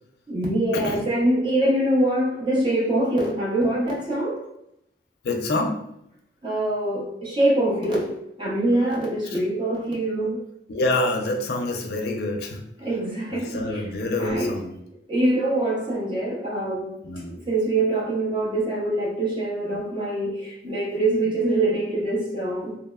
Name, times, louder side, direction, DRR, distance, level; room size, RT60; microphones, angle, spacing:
voice 1, 0.3-4.5 6.4-10.4 12.8-13.9 14.2-14.6 15.1-17.0 17.3-22.8, right 1 dB, 25° right, -5 dB, 0.6 m, -24 dB
voice 2, 5.2-5.8 10.7-12.6 13.3-14.7 17.0-17.4 20.6-20.8, left 2 dB, 60° left, 2 dB, 0.4 m, -26 dB
2.8 x 2.0 x 2.2 m, 0.78 s
head